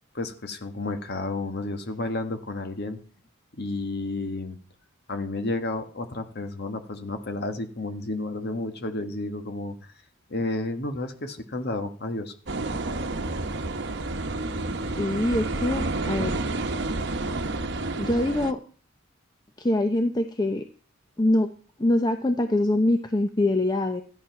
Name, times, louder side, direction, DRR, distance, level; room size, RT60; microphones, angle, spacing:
voice 1, 0.1-3.0 3.6-4.6 5.1-9.7 10.3-12.3, left 2 dB, 50° left, 7 dB, 1.5 m, -31 dB
sound 1, 12.5-18.5, right 2 dB, 55° right, 1.0 m, -29 dB
voice 2, 15.0-16.3 18.0-18.6 19.6-20.6 21.2-21.5 21.8-24.0, left 1 dB, 20° left, 7 dB, 0.7 m, -24 dB
14.0 x 9.7 x 5.9 m, 0.42 s
head